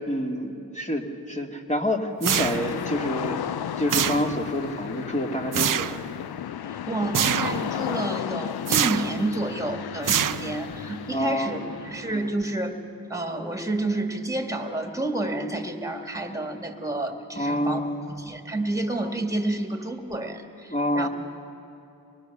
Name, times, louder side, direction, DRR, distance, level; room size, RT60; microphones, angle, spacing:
voice 1, 0.1-3.4 3.8-6.0 11.1-11.8 17.3-18.1 20.7-21.1, equal, 20° left, 2 dB, 2.3 m, -28 dB
sound 1, 2.2-2.9 3.9-4.6 5.5-6.0 7.1-7.7 8.7-9.2 10.0-10.7, right 9 dB, 60° right, 0.6 m, -25 dB
sound 2, 2.3-12.3, left 9 dB, 85° left, 0.6 m, -34 dB
voice 2, 6.9-12.8 13.1-17.8 18.1-21.1, right 2 dB, 10° right, 4 dB, 2.3 m, -29 dB
24.5 x 20.0 x 6.9 m, 3.0 s
cardioid pair, 65°, 37 cm